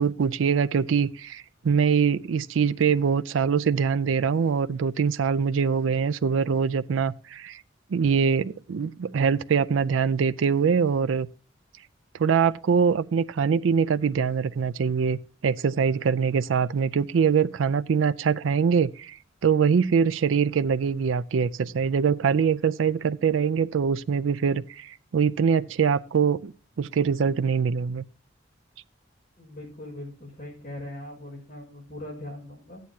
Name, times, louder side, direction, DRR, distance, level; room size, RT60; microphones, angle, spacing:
voice 1, 0.0-7.6 7.9-11.3 12.2-19.2 19.4-26.5 26.8-28.0, right 6 dB, 85° right, 0.4 m, -23 dB
voice 2, 29.4-32.8, left 1 dB, 40° left, 5.6 m, -40 dB
14.0 x 9.3 x 2.8 m
head